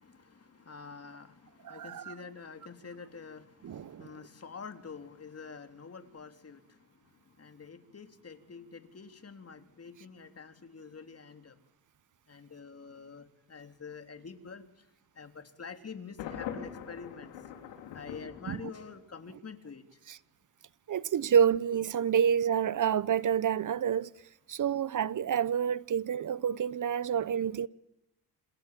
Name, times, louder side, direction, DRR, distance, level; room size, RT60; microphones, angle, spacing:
voice 1, 0.0-11.6 12.3-14.9 15.1-17.3 17.9-20.0, left 5 dB, 35° left, 3.5 m, -47 dB
voice 2, 1.6-2.1 3.6-4.1 18.5-18.6 20.1-20.2 20.9-24.1 24.5-27.7, right 8 dB, 45° right, 1.0 m, -28 dB
Thunder, 16.2-19.2, left 9 dB, 90° left, 4.8 m, -42 dB
28.0 x 27.5 x 7.6 m
supercardioid pair, 75°, 43 cm